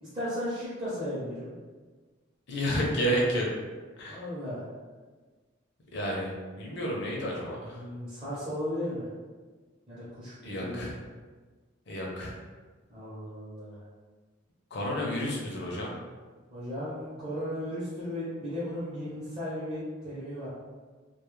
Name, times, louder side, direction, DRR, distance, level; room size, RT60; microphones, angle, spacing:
voice 1, 0.0-1.5 4.1-4.7 7.6-9.1 9.9-10.9 12.9-13.8 16.5-20.5, equal, 25° right, -11 dB, 0.6 m, -35 dB
voice 2, 2.5-3.5 4.0-4.2 5.9-7.8 10.4-10.9 11.9-12.3 14.7-15.9, equal, 60° left, -2 dB, 0.6 m, -31 dB
2.2 x 2.0 x 3.0 m, 1.4 s
head